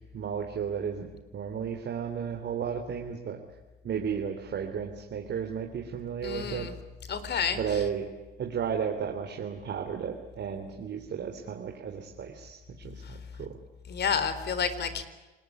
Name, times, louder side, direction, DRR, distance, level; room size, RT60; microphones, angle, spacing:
voice 1, 0.1-1.0 1.3-3.4 3.8-6.7 7.5-8.1 8.4-13.6, right 7 dB, 65° right, 3 dB, 3.4 m, -33 dB
voice 2, 6.2-6.7 7.1-7.6 13.9-15.0, left 6 dB, 55° left, 12 dB, 3.9 m, -29 dB
29.5 x 20.5 x 9.5 m, 1.1 s
cardioid pair, 90°, 20 cm